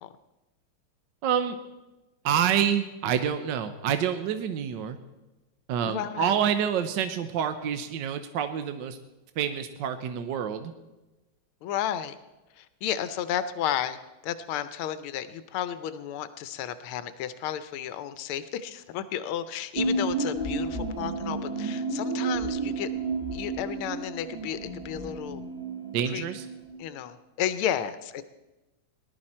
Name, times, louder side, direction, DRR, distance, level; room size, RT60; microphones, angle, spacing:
voice 1, 1.2-1.6 2.2-5.0 5.7-9.0 9.4-10.7 25.9-26.4, right 8 dB, 65° right, 9 dB, 1.3 m, -27 dB
voice 2, 5.8-6.4 11.6-12.2 12.6-14.0 14.2-22.9 23.3-25.4 26.1-26.3 26.8-28.2, left 10 dB, 90° left, 13 dB, 1.6 m, -32 dB
sound 1, 19.8-26.7, right 3 dB, 20° right, 1.7 m, -31 dB
19.5 x 11.5 x 4.3 m, 1.1 s
omnidirectional pair, 2.3 m